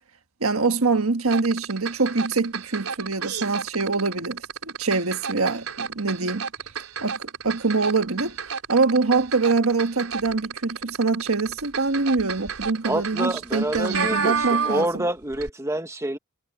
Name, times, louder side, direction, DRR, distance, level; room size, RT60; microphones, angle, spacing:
voice 1, 0.4-6.5 7.0-8.4 8.7-15.0, right 4 dB, 70° right, 1.5 m, -24 dB
sound 1, 1.3-15.1 15.3-15.5, right 6 dB, 90° right, 3.6 m, -31 dB
voice 2, 12.8-16.2, right 1 dB, 15° right, 1.5 m, -27 dB
head